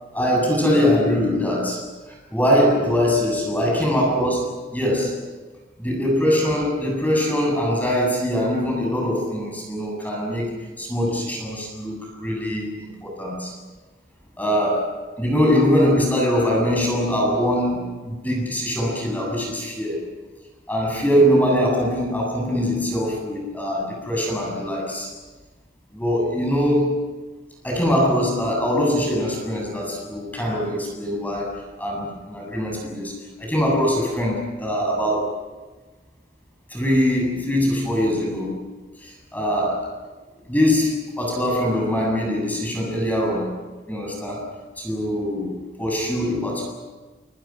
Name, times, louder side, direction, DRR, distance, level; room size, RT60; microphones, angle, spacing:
voice 1, 0.1-5.2 5.8-13.5 14.4-20.0 20.7-25.1 25.9-27.0 27.6-31.5 31.8-33.1 33.4-35.4 36.7-38.6 39.0-39.9 40.5-43.5 43.9-44.4 44.8-46.7, equal, 10° left, -1 dB, 7.9 m, -22 dB
29.0 x 27.0 x 6.1 m, 1.3 s
head